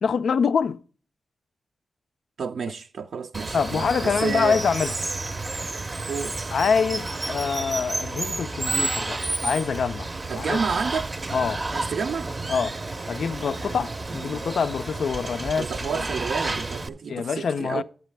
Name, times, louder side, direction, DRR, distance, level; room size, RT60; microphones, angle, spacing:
voice 1, 0.0-0.8 3.5-4.9 6.5-10.1 10.4-10.6 11.3-11.6 12.5-12.8 13.1-15.7 16.0-16.1 17.1-17.8, left 6 dB, 85° left, 0.3 m, -25 dB
voice 2, 2.4-4.6 6.1-6.4 10.3-11.1 11.7-12.3 14.3-14.4 15.6-17.8, right 6 dB, 85° right, 0.3 m, -30 dB
Water, 3.3-16.9, right 2 dB, 35° right, 0.5 m, -31 dB
10.5 x 7.4 x 3.2 m
wide cardioid pair, 90°, 0 cm